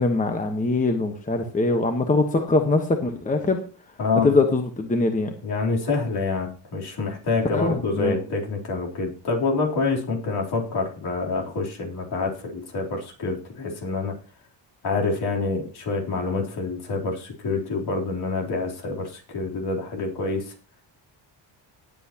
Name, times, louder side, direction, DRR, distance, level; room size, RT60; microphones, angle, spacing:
voice 1, 0.0-3.6 4.2-5.3 7.5-8.2, left 3 dB, 15° left, 5 dB, 1.2 m, -22 dB
voice 2, 4.0-4.3 5.4-14.2 14.8-20.5, left 3 dB, 60° left, -1 dB, 3.7 m, -27 dB
18.5 x 8.3 x 2.9 m, 0.34 s
cardioid pair, 120°, 44 cm